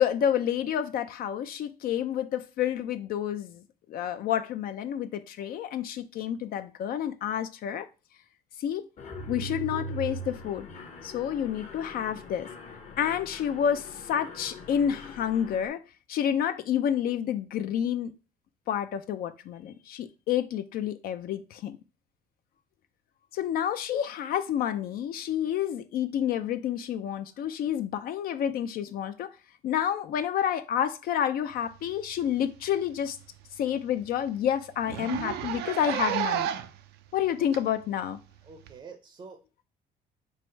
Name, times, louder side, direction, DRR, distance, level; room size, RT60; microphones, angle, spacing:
voice 1, 0.0-3.6 3.9-7.9 8.6-8.9 9.3-10.7 11.0-12.5 13.0-15.8 16.1-18.1 18.7-21.8 23.3-29.3 29.6-33.2 33.6-36.5 37.1-38.2, left 9 dB, 60° left, 0.4 m, -29 dB
Mechanisms, 9.0-15.7, equal, 40° left, 0.8 m, -41 dB
Zipper (clothing), 32.2-32.4 32.7-32.8 33.2-33.3 33.7-33.8 34.0-34.2 34.8-36.8 37.5-37.6 38.7-38.8, right 11 dB, 80° right, 0.4 m, -31 dB
voice 2, 38.4-39.6, right 4 dB, 30° right, 0.5 m, -47 dB
4.7 x 2.1 x 4.3 m
cardioid pair, 110°, 17 cm